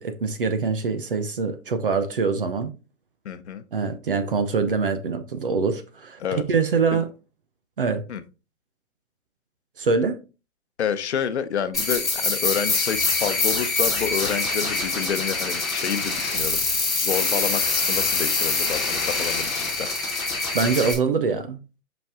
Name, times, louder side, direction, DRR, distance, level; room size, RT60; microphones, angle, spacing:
voice 1, 0.0-2.7 3.7-6.2 6.5-7.1 7.8-8.0 9.8-10.2 20.5-21.6, right 5 dB, 40° right, 0.7 m, -24 dB
voice 2, 3.2-3.6 6.2-6.4 6.9-7.0 8.1-8.2 10.8-19.9, left 8 dB, 50° left, 0.9 m, -29 dB
sound 1, 11.7-20.9, left 3 dB, ahead, 0.8 m, -24 dB
5.4 x 5.3 x 3.5 m
hypercardioid pair, 175°, 42 cm